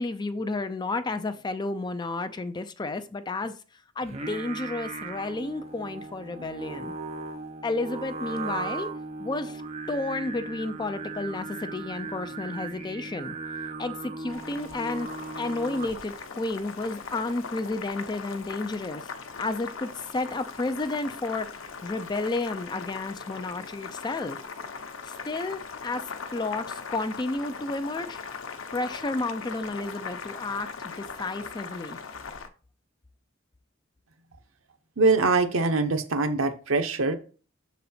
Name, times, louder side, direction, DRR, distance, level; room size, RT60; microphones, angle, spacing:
voice 1, 0.0-6.9 7.6-8.9 9.2-9.6 9.9-13.4 13.8-15.1 15.3-19.1 19.4-24.4 25.0-28.2 28.7-32.0, left 2 dB, 20° left, 0.4 m, -32 dB
Singing, 4.0-16.2, right 3 dB, 30° right, 0.7 m, -37 dB
Boiling, 14.3-32.5, left 5 dB, 90° left, 0.8 m, -40 dB
voice 2, 35.0-37.1, right 3 dB, 85° right, 0.9 m, -23 dB
6.4 x 4.1 x 4.2 m
head